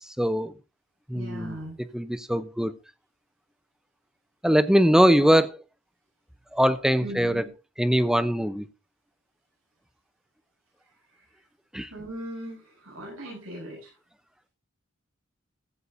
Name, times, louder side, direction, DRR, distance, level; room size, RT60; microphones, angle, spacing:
voice 1, 0.2-0.5 1.1-1.6 1.9-2.7 4.4-5.6 6.5-7.4 7.8-8.6 11.7-11.9, equal, 5° right, 12 dB, 0.7 m, -21 dB
voice 2, 1.1-1.8 7.0-7.5 11.1-11.2 11.9-13.9, equal, 85° right, -4 dB, 7.2 m, -39 dB
15.5 x 14.0 x 2.7 m, 0.29 s
head